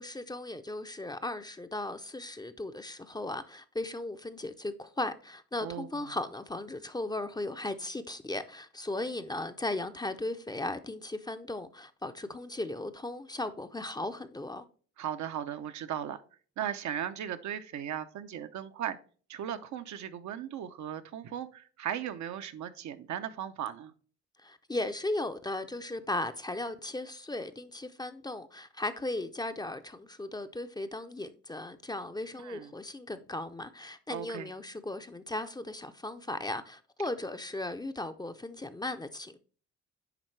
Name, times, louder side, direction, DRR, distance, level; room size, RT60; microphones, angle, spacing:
voice 1, 0.0-14.6 24.4-39.4, left 2 dB, 15° left, 0.5 m, -37 dB
voice 2, 5.6-6.2 15.0-16.2 16.6-19.0 19.3-23.9 32.4-32.7 34.1-34.5, right 10 dB, 70° right, 0.7 m, -37 dB
10.0 x 3.6 x 3.2 m
cardioid pair, 90°, 30 cm